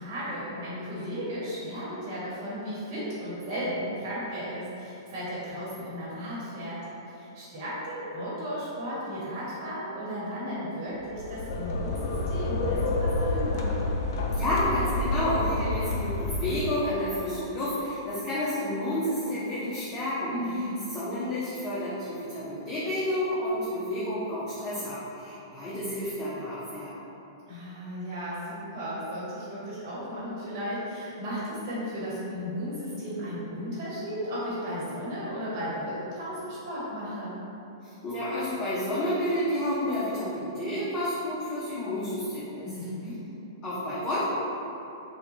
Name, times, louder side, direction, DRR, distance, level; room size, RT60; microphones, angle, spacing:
voice 1, 0.0-6.8 7.1-13.7 20.3-20.8 27.5-37.4 42.6-43.2, equal, 50° right, -9 dB, 1.1 m, -35 dB
sound 1, 11.0-17.0, left 2 dB, 60° left, 0.4 m, -29 dB
voice 2, 14.3-20.4 20.9-26.9 37.8-42.7 43.6-44.3, left 1 dB, 25° left, -9 dB, 0.6 m, -30 dB
3.6 x 2.2 x 3.1 m, 2.9 s
hypercardioid pair, 125°, 2 cm